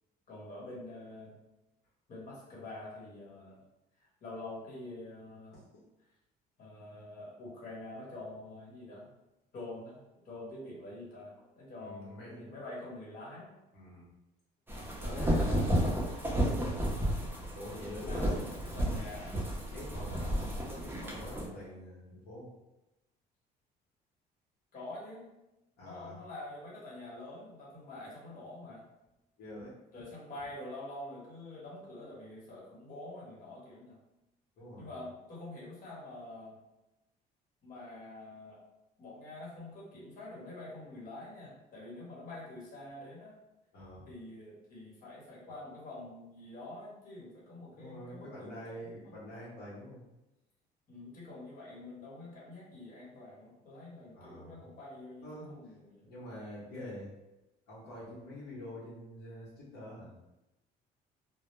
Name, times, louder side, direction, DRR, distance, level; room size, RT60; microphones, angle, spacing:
voice 1, 0.3-1.4 2.1-3.6 4.0-5.6 6.6-9.1 9.5-11.3 11.6-13.5 14.7-15.8 18.0-19.4 24.7-25.3 25.8-28.9 29.9-34.0 34.8-36.6 37.6-38.6 39.0-43.4 44.1-49.2 50.9-56.1, left 2 dB, 55° left, -5 dB, 1.1 m, -46 dB
voice 2, 11.8-12.5 13.7-14.1 15.0-15.5 17.6-18.3 19.7-22.5 25.8-26.2 29.4-29.7 34.6-34.9 43.7-44.1 47.8-50.1 54.1-54.6 55.2-55.5 56.0-57.1 57.7-60.1, left 1 dB, 75° left, -8 dB, 0.9 m, -46 dB
sound 1, 14.7-21.4, equal, 10° right, 0.6 m, -32 dB
2.1 x 2.0 x 3.0 m, 0.96 s
cardioid pair, 110°, 17 cm